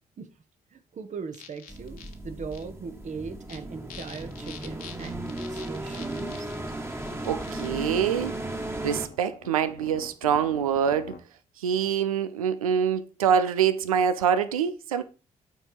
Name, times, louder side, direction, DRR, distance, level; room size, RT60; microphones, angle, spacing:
voice 1, 0.7-6.5, right 5 dB, 45° right, 1.1 m, -39 dB
sound 1, 1.3-2.1 2.5-2.6 3.3-3.6 3.9-8.0 8.9-11.2, left 6 dB, 55° left, 1.4 m, -46 dB
sound 2, 1.7-9.1, right 1 dB, 15° right, 1.4 m, -35 dB
voice 2, 7.2-8.3 8.8-11.2 11.6-15.0, right 8 dB, 85° right, 0.5 m, -25 dB
9.0 x 4.5 x 4.8 m
figure-of-eight pair, 40°, 18 cm